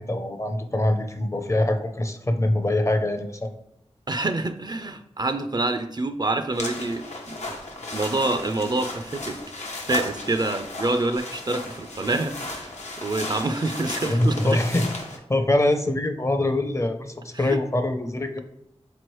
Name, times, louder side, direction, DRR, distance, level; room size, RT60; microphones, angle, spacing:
voice 1, 0.0-3.5 14.0-14.9 15.3-18.4, left 1 dB, 25° left, 7 dB, 0.5 m, -24 dB
voice 2, 4.1-7.4 7.9-9.4 9.9-14.6 17.3-17.6, right 2 dB, 40° right, 9 dB, 0.3 m, -27 dB
sound 1, 6.5-15.2, left 2 dB, 90° left, 0.7 m, -35 dB
3.9 x 3.0 x 3.0 m, 0.79 s
cardioid pair, 45°, 11 cm